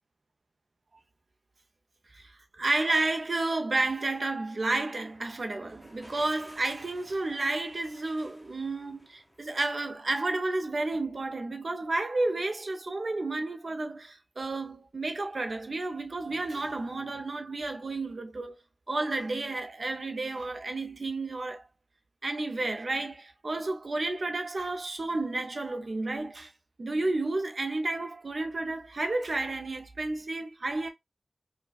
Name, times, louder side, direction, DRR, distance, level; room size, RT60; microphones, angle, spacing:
voice 1, 2.1-18.5 18.9-21.7 22.2-26.5 26.8-30.9, right 2 dB, 60° right, 0.6 m, -31 dB
sound 1, 5.0-10.2, equal, 5° right, 1.0 m, -55 dB
4.6 x 2.2 x 2.3 m
wide cardioid pair, 80°, 0 cm